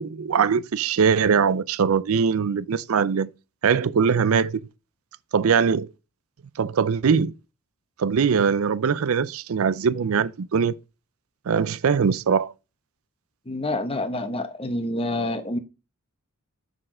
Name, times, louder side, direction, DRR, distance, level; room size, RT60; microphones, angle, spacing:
voice 1, 0.0-3.3 3.6-4.6 5.3-5.9 6.6-7.3 8.0-10.8 11.5-12.5, right 6 dB, 70° right, 0.5 m, -21 dB
voice 2, 13.5-15.6, left 1 dB, 25° left, 1.0 m, -27 dB
6.7 x 6.2 x 3.7 m
head